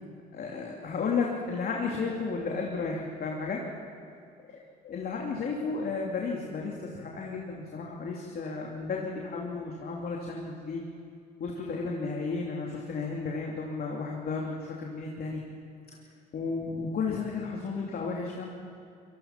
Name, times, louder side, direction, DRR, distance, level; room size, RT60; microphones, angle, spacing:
voice 1, 0.3-3.6 4.8-10.9 11.4-15.4 16.3-18.5, left 4 dB, 50° left, -1 dB, 2.9 m, -33 dB
24.0 x 20.5 x 5.9 m, 2.4 s
hypercardioid pair, 70°, 20 cm